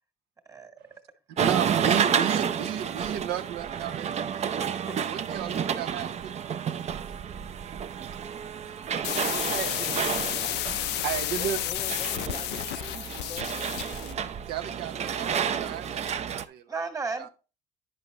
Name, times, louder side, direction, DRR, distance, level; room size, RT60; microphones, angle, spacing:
voice 1, 1.3-4.2 5.1-6.6 8.7-8.8 9.2-9.9 10.5-10.6 11.0-11.6 14.5-16.9 17.2-17.3, right 10 dB, 85° right, 0.7 m, -34 dB
sound 1, 1.4-16.4, right 8 dB, 40° right, 0.5 m, -30 dB
voice 2, 4.6-5.0 16.7-17.3, right 4 dB, 20° right, 1.5 m, -34 dB
sound 2, 9.0-14.2, left 14 dB, 80° left, 0.4 m, -31 dB
voice 3, 11.1-13.8, left 5 dB, 30° left, 0.6 m, -44 dB
9.8 x 5.5 x 3.0 m
cardioid pair, 110°, 17 cm